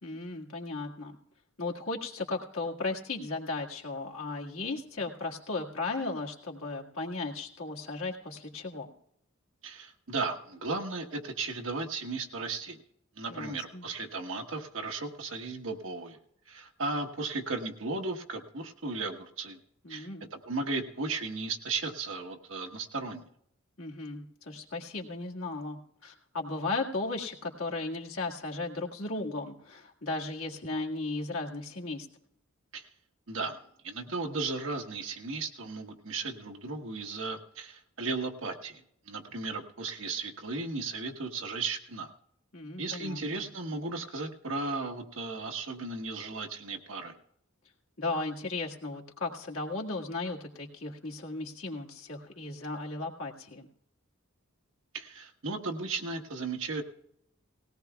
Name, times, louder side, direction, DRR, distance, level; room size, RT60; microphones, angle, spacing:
voice 1, 0.0-1.2 1.6-8.9 13.3-13.9 19.8-20.2 23.8-32.1 42.5-43.5 48.0-53.7, left 3 dB, 80° left, -1 dB, 1.9 m, -36 dB
voice 2, 9.6-12.8 13.2-16.2 16.5-19.6 19.9-23.3 32.7-32.9 33.3-33.6 33.8-38.8 39.1-42.1 42.8-47.1 54.9-56.8, right 3 dB, 70° right, 3 dB, 1.2 m, -35 dB
18.5 x 17.5 x 2.3 m, 0.72 s
head